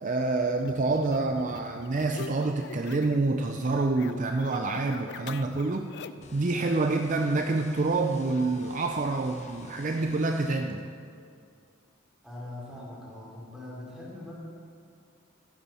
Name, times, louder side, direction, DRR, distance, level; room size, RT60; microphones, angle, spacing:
voice 1, 0.0-5.9 6.3-10.9, right 3 dB, 40° right, 4 dB, 0.5 m, -27 dB
sound 1, 0.6-3.3 3.6-6.3, left 6 dB, 55° left, 0.4 m, -45 dB
sound 2, 6.2-10.6, left 3 dB, 35° left, 0.9 m, -51 dB
voice 2, 12.2-14.3, left 1 dB, 5° right, -6 dB, 3.4 m, -42 dB
14.5 x 11.0 x 4.3 m, 2.4 s
head